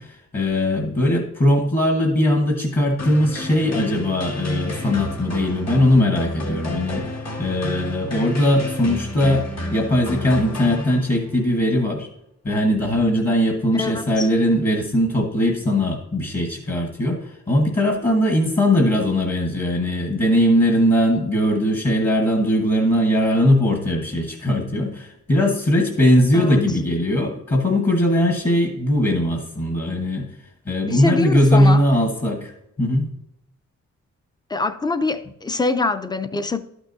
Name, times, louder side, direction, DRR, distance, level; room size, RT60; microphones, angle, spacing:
voice 1, 0.0-12.1 12.4-30.3 30.7-32.5 32.8-33.1, left 1 dB, 30° left, 1.2 m, -20 dB
sound 1, 3.0-11.4, left 1 dB, 60° left, 1.8 m, -30 dB
voice 2, 13.7-14.3 26.3-26.6 30.9-31.8 34.5-36.6, left 3 dB, 15° left, 0.4 m, -24 dB
12.0 x 6.1 x 2.6 m
wide cardioid pair, 140°, 30 cm